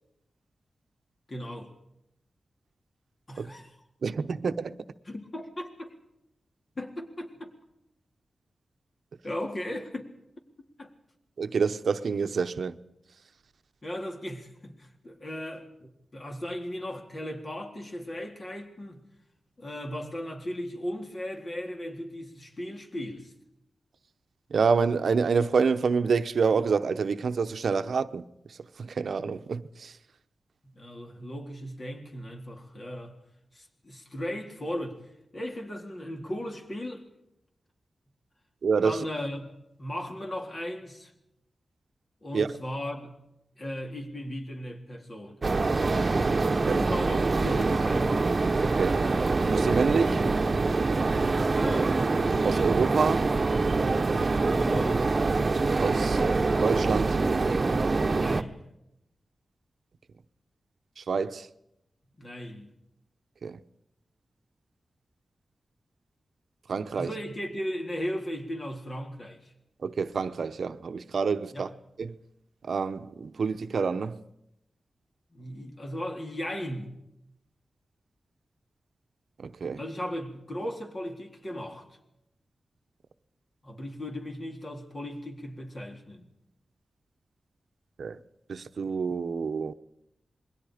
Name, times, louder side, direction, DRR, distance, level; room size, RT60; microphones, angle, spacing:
voice 1, 1.3-1.7 3.3-3.7 5.1-5.9 6.8-7.5 9.2-10.1 10.8-10.9 13.8-19.0 19.6-23.3 30.6-33.2 33.5-35.0 35.3-37.0 38.8-39.5 39.8-41.1 42.2-43.2 43.6-45.4 46.1-46.3 46.7-48.4 51.5-52.0 54.3-55.1 58.0-58.7 62.2-62.7 66.9-69.5 71.5-71.7 75.3-76.9 79.8-81.9 83.6-86.3, equal, 40° left, 3.9 m, -37 dB
voice 2, 4.0-4.8 11.4-12.8 24.5-28.2 28.8-29.9 38.6-39.0 42.3-42.5 46.6-46.8 48.6-49.0 49.4-50.2 52.4-53.3 55.8-56.3 56.6-57.2 61.0-61.5 63.4-63.6 66.7-67.1 69.8-71.7 72.0-72.1 72.6-74.2 79.4-79.8 88.0-88.2 88.5-89.7, right 5 dB, 75° right, 0.9 m, -27 dB
sound 1, 45.4-58.4, right 3 dB, 45° right, 1.1 m, -25 dB
27.5 x 22.0 x 5.0 m
wide cardioid pair, 85°, 0 cm